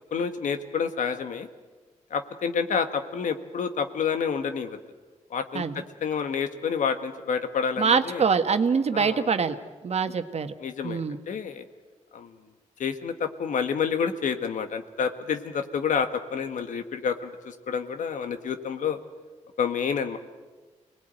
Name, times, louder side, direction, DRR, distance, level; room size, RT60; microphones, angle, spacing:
voice 1, 0.1-1.5 2.1-4.8 5.3-5.6 6.0-8.2 8.9-9.3 10.6-11.6 12.1-12.3 12.8-19.0 19.6-20.2, left 6 dB, 85° left, 8 dB, 1.6 m, -29 dB
voice 2, 7.8-9.5 9.8-10.5 10.8-11.2, right 5 dB, 55° right, 8 dB, 1.5 m, -24 dB
25.5 x 19.5 x 9.1 m, 1.3 s
cardioid pair, 80°, 13 cm